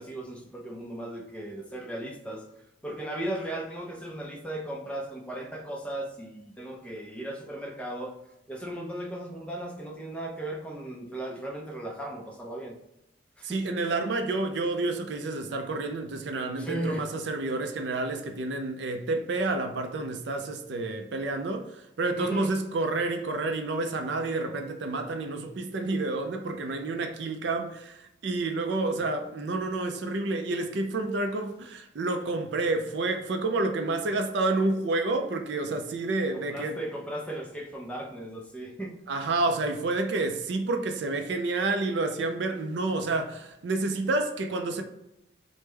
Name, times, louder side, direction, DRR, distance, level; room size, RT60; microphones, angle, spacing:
voice 1, 0.0-2.4 2.8-8.1 8.5-12.8 13.4-13.6 16.6-17.1 22.2-22.6 36.3-39.0, right 1 dB, 5° left, 0.4 m, -36 dB
voice 2, 13.4-36.8 39.1-44.8, right 2 dB, 65° right, 0.4 m, -29 dB
3.3 x 2.1 x 3.2 m
head